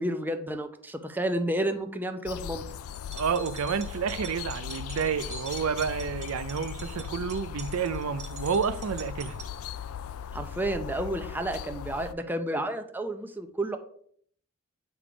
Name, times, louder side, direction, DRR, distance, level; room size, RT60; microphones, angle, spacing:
voice 1, 0.0-2.6 10.3-13.8, right 1 dB, 10° right, 0.6 m, -31 dB
sound 1, 2.3-12.1, left 8 dB, 80° left, 0.3 m, -38 dB
sound 2, 3.0-9.5, right 3 dB, 35° right, 1.4 m, -44 dB
voice 2, 3.1-9.4, right 6 dB, 85° right, 0.5 m, -30 dB
8.5 x 3.5 x 4.9 m
head